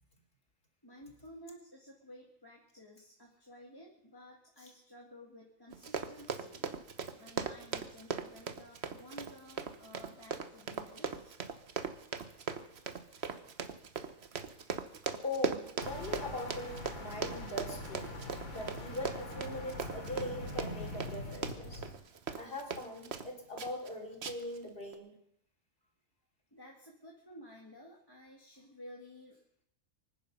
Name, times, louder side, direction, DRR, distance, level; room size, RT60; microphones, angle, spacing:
voice 1, 0.8-6.7 7.1-11.3 12.1-12.2 12.8-13.3 26.5-29.4, equal, 15° left, -2 dB, 1.9 m, -54 dB
Run, 5.7-23.3 23.6-23.9 24.2-24.6 24.9-25.0, right 6 dB, 55° right, 1.2 m, -39 dB
voice 2, 15.2-18.1 18.5-21.8 22.4-25.1, left 1 dB, 40° left, 3 dB, 3.4 m, -41 dB
sound 1, 15.8-21.9, left 1 dB, 80° left, 3.2 m, -43 dB
24.5 x 10.0 x 5.4 m, 0.73 s
omnidirectional pair, 1.4 m